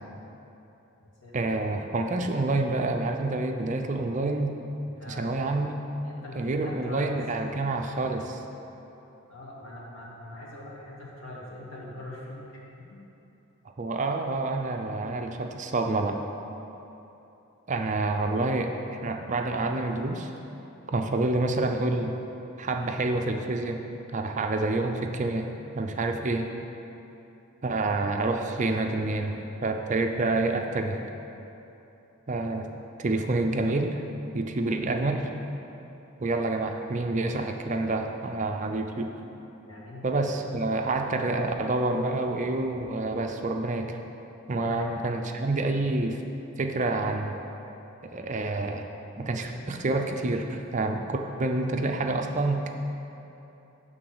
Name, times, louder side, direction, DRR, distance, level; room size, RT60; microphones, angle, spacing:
voice 1, 1.3-4.5 5.1-5.8 6.3-8.4 13.8-16.2 17.7-18.7 19.0-20.3 20.9-22.1 22.6-23.8 24.1-25.5 25.7-26.5 27.6-31.0 32.3-32.7 33.0-34.0 34.3-35.3 36.2-39.1 40.0-44.0 44.5-46.2 46.6-47.4 48.0-48.9 49.2-52.7, right 2 dB, 35° right, 4 dB, 0.5 m, -28 dB
voice 2, 4.8-5.6 6.0-7.2 9.3-12.4 12.8-13.0 39.7-40.4 44.6-44.9, left 1 dB, 65° left, -5 dB, 2.0 m, -42 dB
11.5 x 3.9 x 7.7 m, 3.0 s
head